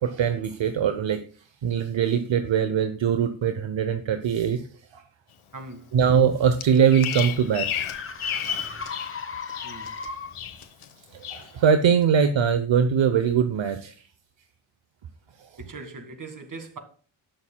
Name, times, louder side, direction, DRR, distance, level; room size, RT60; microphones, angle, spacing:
voice 1, 0.0-1.2 1.6-4.6 4.9-5.0 5.9-7.7 11.3-13.9, right 7 dB, 60° right, 0.9 m, -22 dB
voice 2, 5.5-5.9 9.6-9.9 15.6-16.8, right 3 dB, 40° right, 1.9 m, -40 dB
sound 1, 6.3-10.6, left 5 dB, 25° left, 1.0 m, -38 dB
Bird vocalization bird call bird song, 6.6-9.1 9.4-10.1 10.3-10.9 11.2-11.5, left 9 dB, 75° left, 1.1 m, -31 dB
19.0 x 6.4 x 2.3 m
wide cardioid pair, 110°, 50 cm